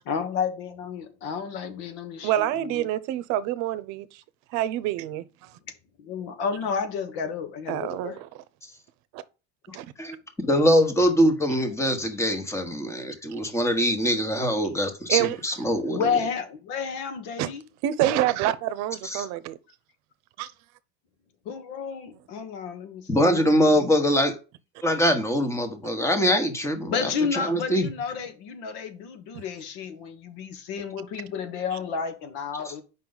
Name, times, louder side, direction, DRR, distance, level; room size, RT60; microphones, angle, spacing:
voice 1, 0.0-2.9 6.0-8.2 15.8-17.6 21.5-23.9 26.8-32.8, left 6 dB, 85° left, 1.6 m, -31 dB
voice 2, 2.2-4.1 4.5-5.5 7.7-8.3 9.1-9.2 9.7-9.9 15.1-15.4 17.4-17.5 17.8-19.6 20.4-20.5, right 13 dB, 70° right, 0.7 m, -26 dB
voice 3, 10.4-16.0 19.0-19.3 23.1-24.3 24.8-27.9 32.6-32.7, equal, 10° left, 1.2 m, -23 dB
7.2 x 5.4 x 3.9 m
cardioid pair, 150°, 29 cm